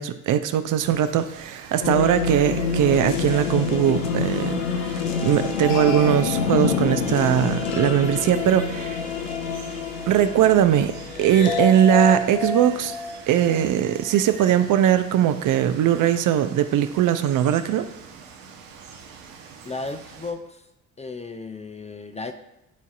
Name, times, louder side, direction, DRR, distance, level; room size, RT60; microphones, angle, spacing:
voice 1, 0.0-4.6 5.2-9.0 10.1-12.9 13.3-17.9, right 10 dB, 50° right, 10 dB, 0.6 m, -20 dB
Water, 0.8-20.3, right 6 dB, 70° right, 1.0 m, -44 dB
sound 1, 1.8-13.6, left 5 dB, 80° left, 0.7 m, -27 dB
voice 2, 19.6-20.7 21.0-22.3, left 3 dB, 15° left, 8 dB, 0.5 m, -34 dB
11.5 x 4.0 x 2.5 m, 0.89 s
hypercardioid pair, 50°, 40 cm